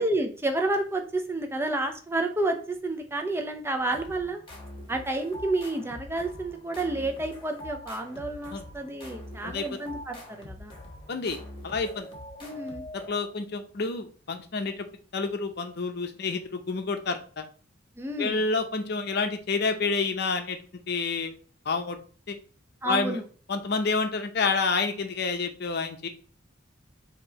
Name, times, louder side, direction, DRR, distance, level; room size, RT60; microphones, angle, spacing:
voice 1, 0.0-4.4 4.9-10.7 12.4-12.9 18.0-18.4 22.8-23.2, right 2 dB, 10° right, 4 dB, 0.6 m, -30 dB
sound 1, 3.9-13.4, left 1 dB, 25° left, 1.1 m, -44 dB
voice 2, 9.4-9.8 11.1-11.4 11.6-12.1 12.9-14.9 15.1-17.4 18.2-20.6 20.9-21.3 21.6-22.0 22.3-22.4 22.8-23.2 23.5-26.1, left 4 dB, 55° left, 6 dB, 0.7 m, -29 dB
4.4 x 2.9 x 4.0 m, 0.40 s
head